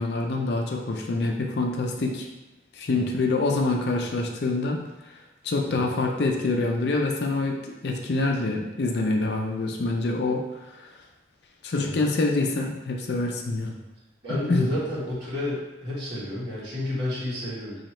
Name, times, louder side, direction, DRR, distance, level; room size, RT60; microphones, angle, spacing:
voice 1, 0.0-2.3 2.7-4.8 5.4-10.4 10.8-10.9 11.6-13.8 14.3-14.7, left 2 dB, 65° left, 1 dB, 0.5 m, -26 dB
voice 2, 2.9-3.2 5.6-5.9 11.7-12.0 14.2-17.7, left 1 dB, 60° right, -9 dB, 1.4 m, -31 dB
3.0 x 2.8 x 4.3 m, 1.0 s
head